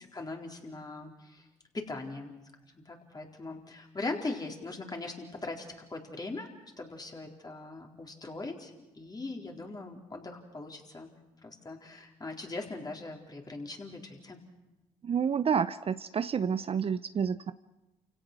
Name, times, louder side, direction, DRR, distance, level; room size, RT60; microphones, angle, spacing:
voice 1, 0.1-1.5 1.7-2.3 2.6-6.5 6.8-11.1 11.4-14.4, left 3 dB, 30° left, 1 dB, 4.2 m, -40 dB
voice 2, 15.0-17.5, right 7 dB, 45° right, 14 dB, 0.7 m, -29 dB
29.0 x 17.0 x 6.2 m, 1.0 s
supercardioid pair, 55°, 14 cm